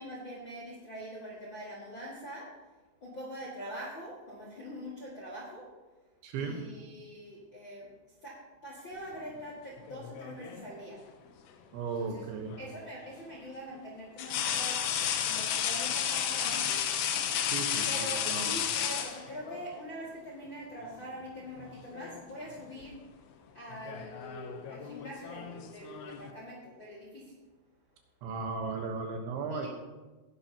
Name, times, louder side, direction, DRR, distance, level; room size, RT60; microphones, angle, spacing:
voice 1, 0.0-2.5 3.0-5.7 6.4-7.9 8.2-11.0 12.0-12.1 12.6-16.8 17.9-23.0 23.5-27.3 29.5-29.7, equal, 40° left, -4 dB, 1.7 m, -44 dB
voice 2, 6.2-6.6 11.7-12.6 17.4-18.5 28.2-29.7, right 4 dB, 70° right, 3 dB, 3.3 m, -36 dB
sound 1, 9.9-10.7 12.5-12.7 14.2-19.6 20.8-21.0 21.4-22.2 22.5-22.8 23.7-26.3, left 9 dB, 90° left, 2.3 m, -33 dB
19.0 x 11.0 x 3.0 m, 1.2 s
omnidirectional pair, 5.9 m